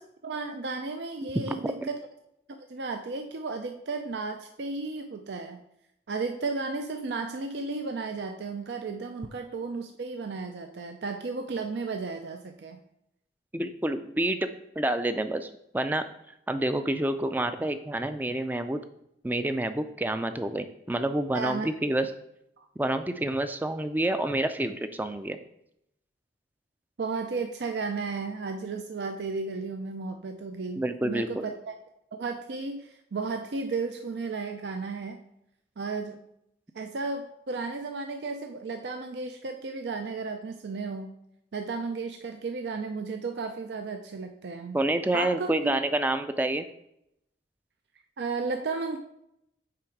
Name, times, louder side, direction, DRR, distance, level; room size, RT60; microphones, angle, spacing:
voice 1, 0.2-2.0 2.6-5.6 6.1-12.8 21.3-21.7 22.6-22.7 27.0-31.7 32.2-35.2 35.8-36.2 36.7-41.1 41.5-44.8 45.1-45.7 48.2-49.0, right 4 dB, 70° right, 5 dB, 0.5 m, -34 dB
voice 2, 1.2-1.7 13.5-14.5 14.8-16.0 16.5-18.8 19.2-22.1 22.8-25.4 30.8-31.5 44.7-46.6, right 1 dB, 10° right, 9 dB, 0.3 m, -28 dB
8.6 x 3.5 x 4.5 m, 0.79 s
head